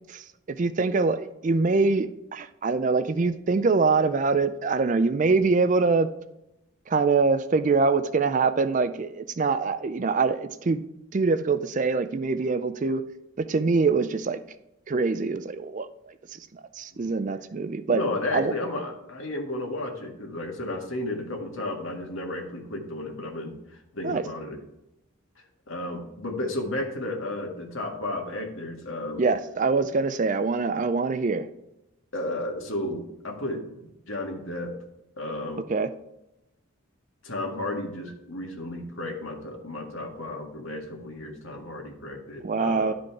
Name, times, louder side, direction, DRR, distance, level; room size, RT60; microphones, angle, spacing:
voice 1, 0.1-6.1 6.9-10.8 11.1-13.0 13.4-14.4 14.9-15.9 16.3-18.0 18.3-18.5 24.0-24.2 29.2-31.5 35.7-35.9 42.4-42.9, right 4 dB, 35° right, 11 dB, 0.4 m, -24 dB
voice 2, 17.9-24.6 25.4-29.2 32.1-34.7 35.2-35.7 37.2-42.9, left 1 dB, 65° left, 1 dB, 1.8 m, -33 dB
11.5 x 5.1 x 4.6 m, 0.89 s
head